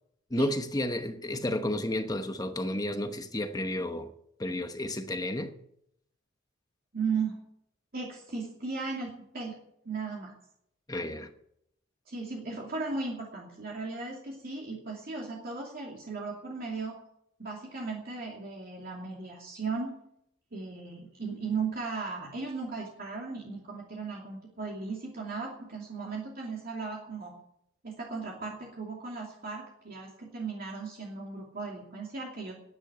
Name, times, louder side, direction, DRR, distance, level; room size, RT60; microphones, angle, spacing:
voice 1, 0.3-4.1 4.4-5.5 10.9-11.3, left 1 dB, 20° left, 1.0 m, -32 dB
voice 2, 6.9-7.4 7.9-9.5 9.8-10.3 12.1-16.9 17.4-19.9 20.5-27.3 27.8-32.5, right 4 dB, 50° right, 2.7 m, -36 dB
11.5 x 9.7 x 9.7 m
head